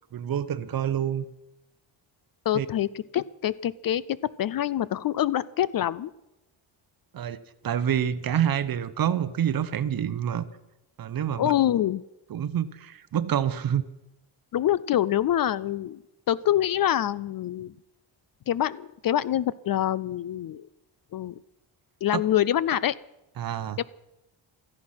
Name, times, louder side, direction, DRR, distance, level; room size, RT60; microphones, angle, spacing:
voice 1, 0.1-1.2 2.5-2.7 7.1-7.4 7.6-10.4 11.0-11.5 12.3-13.8 22.1-22.2 23.4-23.8, right 9 dB, 45° right, 13 dB, 0.9 m, -27 dB
voice 2, 2.5-6.1 11.3-12.0 14.5-16.0 16.3-17.7 18.5-20.7 21.1-21.3 22.0-22.9 23.8-23.9, left 11 dB, 50° left, 20 dB, 0.4 m, -25 dB
16.5 x 14.5 x 5.7 m, 0.93 s
cardioid pair, 160°, 48 cm